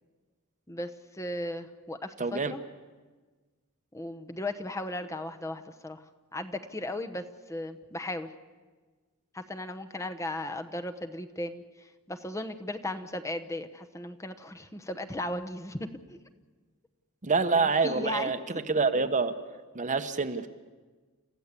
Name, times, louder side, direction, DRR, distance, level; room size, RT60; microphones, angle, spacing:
voice 1, 0.7-2.6 3.9-6.0 6.3-8.3 9.3-16.2 17.5-18.6, left 1 dB, 15° left, 7 dB, 0.9 m, -36 dB
voice 2, 2.2-2.5 17.2-18.4 18.7-19.3 19.7-20.5, right 4 dB, 35° right, 9 dB, 1.0 m, -26 dB
30.0 x 14.5 x 8.3 m, 1.4 s
head